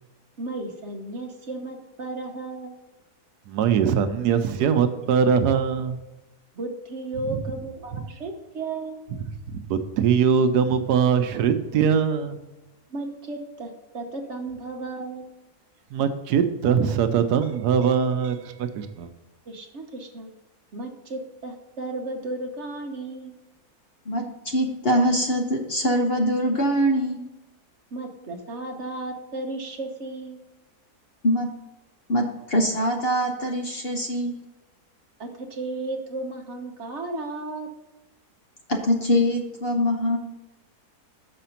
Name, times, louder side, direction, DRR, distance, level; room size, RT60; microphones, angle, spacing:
voice 1, 0.4-2.8 6.5-9.0 12.9-15.3 19.5-20.3 20.7-23.4 27.9-30.4 35.2-37.7, right 2 dB, 50° right, 4 dB, 1.2 m, -34 dB
voice 2, 3.5-6.0 9.5-12.4 15.9-19.1, right 7 dB, 85° right, 9 dB, 1.3 m, -22 dB
voice 3, 24.1-27.3 31.2-31.5 32.1-34.3 38.7-40.2, equal, 45° left, 2 dB, 1.0 m, -23 dB
6.7 x 5.1 x 5.7 m, 1.0 s
omnidirectional pair, 1.7 m